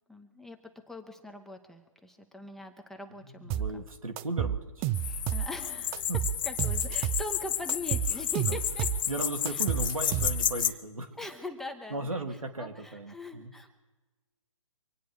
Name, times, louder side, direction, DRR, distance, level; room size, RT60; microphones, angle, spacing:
voice 1, 0.1-0.6 0.9-3.8 5.0-6.1 6.4-8.9 9.5-9.6 10.6-10.7 11.2-12.2 12.6-13.8, left 1 dB, ahead, 3 dB, 1.0 m, -42 dB
voice 2, 3.2-4.9 6.1-6.2 8.1-8.6 9.1-11.1 11.9-13.5, right 2 dB, 85° right, 3 dB, 2.3 m, -36 dB
sound 1, 3.5-3.8 4.2-5.5 5.9-7.3 7.7-9.1 9.5-10.6, right 11 dB, 15° right, 0.4 m, -31 dB
sound 2, 4.9-10.7, left 10 dB, 40° left, 1.0 m, -31 dB
25.5 x 9.3 x 4.8 m, 1.2 s
figure-of-eight pair, 135°, 17 cm